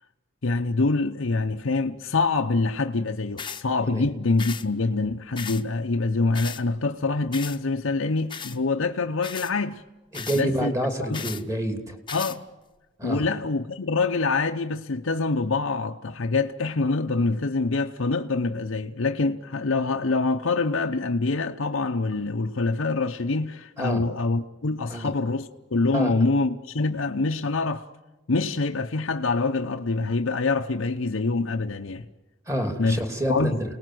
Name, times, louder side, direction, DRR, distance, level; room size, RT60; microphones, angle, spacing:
voice 1, 0.4-9.8 10.3-10.7 11.0-11.2 12.1-12.4 13.0-27.9 28.3-32.1 32.8-33.0 33.3-33.6, left 3 dB, 75° left, 0.8 m, -25 dB
sound 1, 3.4-3.6 4.4-4.7 5.4-5.6 6.3-6.6 7.3-7.6 8.3-8.6 9.2-9.5 10.1-10.4 11.1-11.4 12.1-12.4, left 7 dB, 25° left, 1.0 m, -35 dB
voice 2, 10.1-12.0 13.0-13.2 23.8-24.0 24.9-25.1 25.9-26.1 32.5-33.5, right 1 dB, 15° right, 2.9 m, -28 dB
29.0 x 19.5 x 7.8 m
head